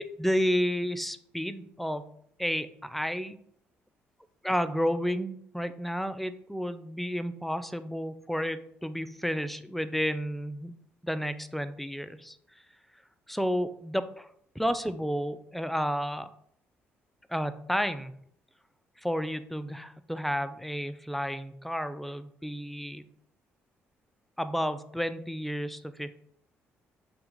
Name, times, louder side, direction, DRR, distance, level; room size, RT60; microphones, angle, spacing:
voice 1, 0.0-2.1 2.4-3.4 4.4-10.7 11.0-12.4 13.3-14.3 14.6-16.3 17.3-18.1 19.0-23.1 24.4-26.1, equal, 5° left, 12 dB, 0.3 m, -31 dB
3.4 x 2.9 x 3.8 m, 0.67 s
supercardioid pair, 55°, 5 cm